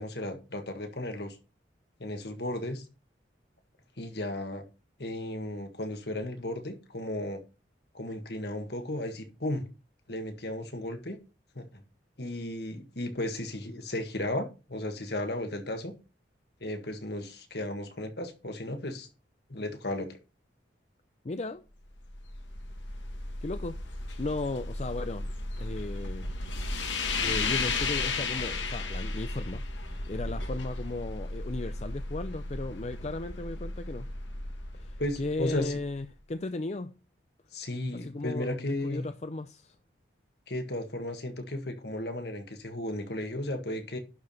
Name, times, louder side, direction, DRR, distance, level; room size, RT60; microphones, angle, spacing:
voice 1, 0.0-1.4 2.0-2.8 4.0-4.6 5.0-7.4 7.9-9.7 10.1-11.2 11.6-11.8 12.2-15.9 16.6-19.1 19.5-20.2 35.0-35.7 37.5-39.1 40.5-44.0, left 1 dB, 60° left, 1.7 m, -35 dB
voice 2, 21.2-21.6 23.4-25.3 25.6-26.3 27.2-34.1 34.7-36.9 37.9-39.8, left 2 dB, 35° left, 0.5 m, -36 dB
sound 1, 21.9-36.0, left 3 dB, 85° left, 1.7 m, -34 dB
11.5 x 4.7 x 5.4 m
head